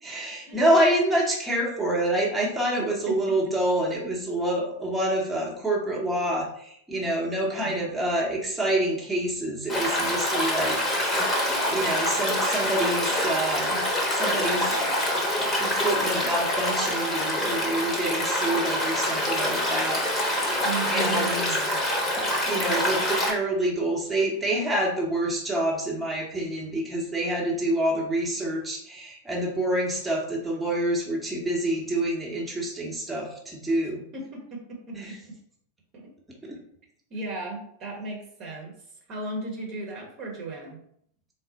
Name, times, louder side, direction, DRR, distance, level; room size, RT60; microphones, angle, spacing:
voice 1, 0.0-11.1 11.7-13.8 14.1-14.7 15.4-20.0 20.9-21.6 22.5-34.0 34.9-35.2 36.4-36.6, right 1 dB, 10° right, -3 dB, 0.9 m, -27 dB
voice 2, 2.8-3.1 7.5-7.8 20.6-21.8 34.1-34.9 35.2-35.3 35.9-36.1 37.1-38.7 39.1-40.8, right 3 dB, 35° right, -2 dB, 1.0 m, -36 dB
Stream, 9.7-23.3, left 1 dB, 20° left, 0.9 m, -26 dB
3.9 x 2.0 x 3.9 m, 0.66 s
figure-of-eight pair, 90°, 0 cm